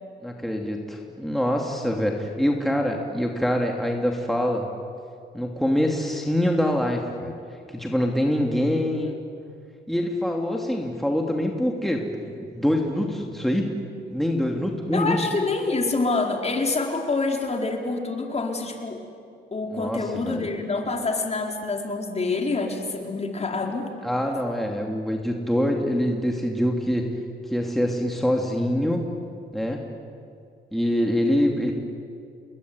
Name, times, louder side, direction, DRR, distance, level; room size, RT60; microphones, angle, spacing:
voice 1, 0.2-4.7 5.3-7.3 7.7-9.2 9.9-12.1 12.5-13.7 14.1-15.2 19.7-20.5 24.0-27.0 27.5-29.0 29.5-29.8 30.7-31.7, equal, ahead, 1 dB, 2.9 m, -24 dB
voice 2, 14.9-19.0 19.5-23.9, left 3 dB, 30° left, 2 dB, 4.7 m, -26 dB
30.0 x 20.5 x 9.7 m, 2.4 s
cardioid pair, 90°, 20 cm